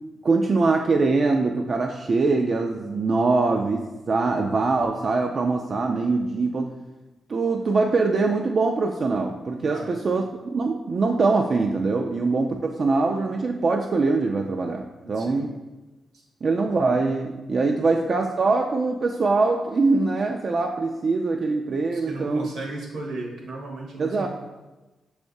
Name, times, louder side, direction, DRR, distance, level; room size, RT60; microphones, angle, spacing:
voice 1, 0.2-6.8 7.3-10.2 10.5-15.5 16.4-22.5 24.0-24.3, right 3 dB, 55° right, 3 dB, 0.3 m, -23 dB
voice 2, 9.6-10.0 15.1-15.5 16.1-16.2 17.6-17.9 21.9-24.3, right 2 dB, 80° right, -1 dB, 1.0 m, -35 dB
6.2 x 3.3 x 2.6 m, 1.1 s
supercardioid pair, 50°, 0 cm